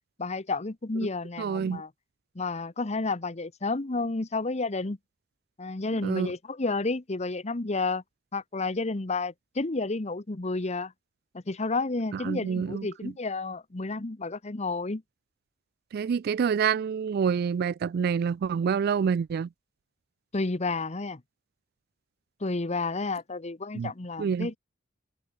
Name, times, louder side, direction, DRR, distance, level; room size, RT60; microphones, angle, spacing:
voice 1, 0.2-1.9 2.3-5.0 5.6-8.0 8.3-10.9 11.3-15.0 20.3-21.2 22.4-24.6, left 3 dB, 35° left, 0.9 m, -31 dB
voice 2, 1.4-1.8 6.0-6.3 12.1-13.1 15.9-19.5 23.7-23.9 24.2-24.5, right 6 dB, 50° right, 0.3 m, -27 dB
head